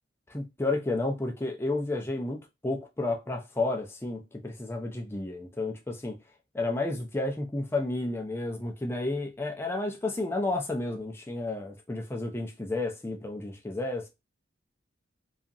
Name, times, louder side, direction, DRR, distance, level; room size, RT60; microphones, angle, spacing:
voice 1, 0.3-6.2 6.5-14.1, left 2 dB, 10° left, 0.4 m, -31 dB
2.8 x 2.4 x 2.4 m
head